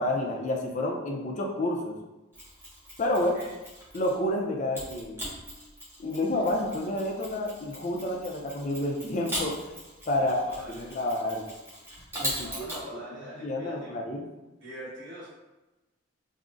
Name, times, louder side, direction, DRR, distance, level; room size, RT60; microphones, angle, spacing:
voice 1, 0.0-2.0 3.0-3.3 3.9-5.2 6.0-9.6 10.1-11.5 12.2-12.7 13.4-14.3, left 1 dB, 40° left, 0 dB, 0.4 m, -29 dB
Mechanisms, 2.3-4.2 4.7-12.8, equal, 10° right, 0.8 m, -40 dB
voice 2, 3.1-3.5 10.2-10.9 12.4-13.9 14.6-15.3, right 1 dB, 60° right, -9 dB, 1.4 m, -43 dB
3.5 x 2.0 x 2.5 m, 1.1 s
head